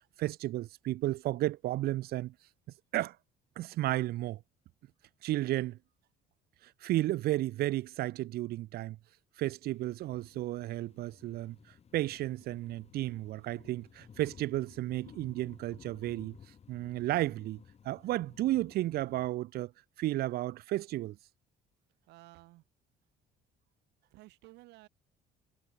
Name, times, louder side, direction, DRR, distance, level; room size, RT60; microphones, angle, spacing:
voice 1, 0.2-2.3 2.9-3.2 3.6-4.4 5.2-5.8 6.6-9.0 9.4-11.6 11.9-16.4 16.7-19.7 20.0-21.2, right 15 dB, 65° right, 0.6 m, -33 dB
sound 1, 9.6-19.3, left 7 dB, 40° left, 2.4 m, -57 dB
voice 2, 22.1-22.6 24.1-24.9, right 20 dB, 90° right, 2.7 m, -54 dB
cardioid pair, 110°, 17 cm